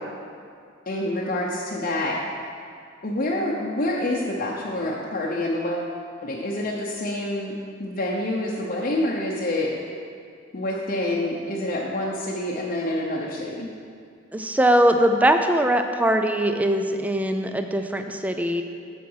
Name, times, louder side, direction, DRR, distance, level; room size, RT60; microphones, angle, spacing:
voice 1, 0.9-2.2 3.0-5.9 6.2-9.7 10.5-13.7, left 1 dB, 45° left, -4 dB, 0.8 m, -27 dB
voice 2, 14.3-18.6, right 1 dB, 10° right, 6 dB, 0.5 m, -21 dB
7.6 x 7.3 x 5.6 m, 2.3 s
head